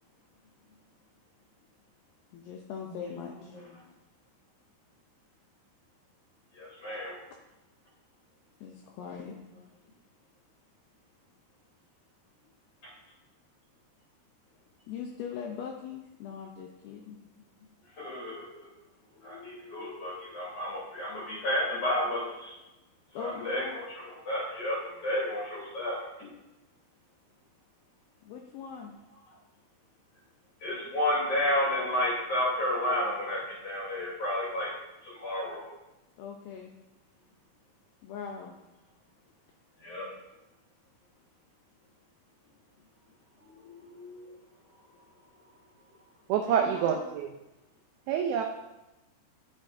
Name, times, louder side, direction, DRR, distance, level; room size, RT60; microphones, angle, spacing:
voice 1, 2.3-3.6 8.6-9.4 14.9-17.2 18.2-18.4 23.1-23.8 28.2-29.0 36.2-36.8 38.0-38.6 46.5-47.0, left 6 dB, 80° left, 1 dB, 2.2 m, -41 dB
voice 2, 6.5-7.1 9.1-9.3 12.8-12.9 18.0-18.5 19.1-22.6 23.1-26.3 30.6-34.7 35.0-35.7 39.8-40.1 43.4-44.3, left 1 dB, 35° left, -6 dB, 3.6 m, -32 dB
voice 3, 46.3-47.3 48.1-48.4, right 8 dB, 85° right, 3 dB, 2.1 m, -27 dB
11.5 x 7.3 x 2.6 m, 0.99 s
omnidirectional pair, 4.9 m